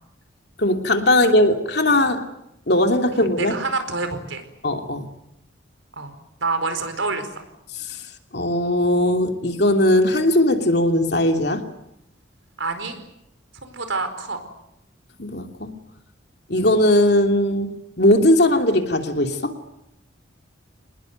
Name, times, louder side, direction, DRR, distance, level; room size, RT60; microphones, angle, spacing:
voice 1, 0.6-2.2 2.7-3.6 4.6-5.1 7.8-8.0 8.3-11.6 15.2-15.7 16.5-19.5, left 1 dB, 55° left, 5 dB, 3.0 m, -19 dB
voice 2, 3.1-4.4 6.0-6.1 6.4-7.4 12.6-13.0 13.6-14.4, right 3 dB, 80° right, 8 dB, 4.7 m, -27 dB
27.0 x 20.0 x 9.5 m, 0.83 s
head